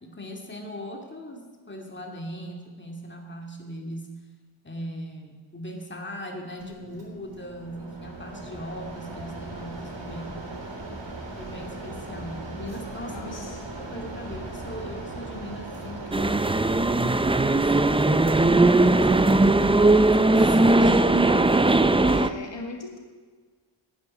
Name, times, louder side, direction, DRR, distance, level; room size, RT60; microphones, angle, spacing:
voice 1, 0.0-4.1 4.6-10.4 11.4-13.5 13.7-22.0, equal, 20° left, 1 dB, 2.4 m, -39 dB
Mechanisms, 6.6-19.0, right 2 dB, 60° right, 3.6 m, -39 dB
voice 2, 13.1-13.6 22.1-23.0, left 3 dB, 65° left, 3 dB, 2.0 m, -38 dB
sound 1, 16.1-22.3, right 2 dB, 10° right, 0.5 m, -19 dB
11.5 x 10.0 x 9.8 m, 1.5 s
wide cardioid pair, 120°, 49 cm